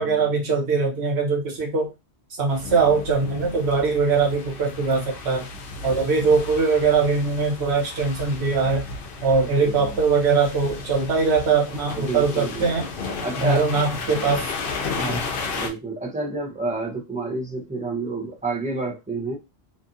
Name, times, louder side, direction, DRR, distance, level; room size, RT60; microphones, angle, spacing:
voice 1, 0.0-1.9 2.4-5.5 5.8-8.8 9.2-12.9 13.4-14.5 15.0-15.2, right 4 dB, 75° right, 1.2 m, -21 dB
sound 1, 2.5-15.7, left 4 dB, 60° left, 0.7 m, -34 dB
voice 2, 9.6-10.0 12.0-12.7 13.2-14.4 15.5-19.4, right 3 dB, 10° right, 0.5 m, -30 dB
2.7 x 2.4 x 2.5 m
omnidirectional pair, 1.1 m